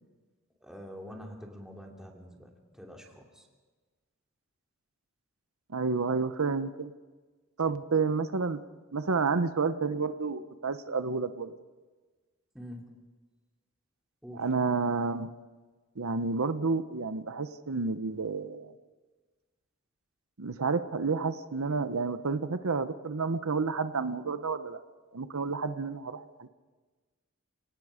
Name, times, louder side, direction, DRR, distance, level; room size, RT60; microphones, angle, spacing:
voice 1, 0.6-3.4 12.5-13.0 14.2-14.5, equal, 5° right, 0 dB, 2.8 m, -46 dB
voice 2, 5.7-6.9 7.6-8.6 8.9-11.5 14.3-15.3 16.0-18.7 20.4-24.8 25.1-26.5, right 4 dB, 80° right, 11 dB, 0.8 m, -30 dB
29.5 x 18.0 x 5.0 m, 1.3 s
head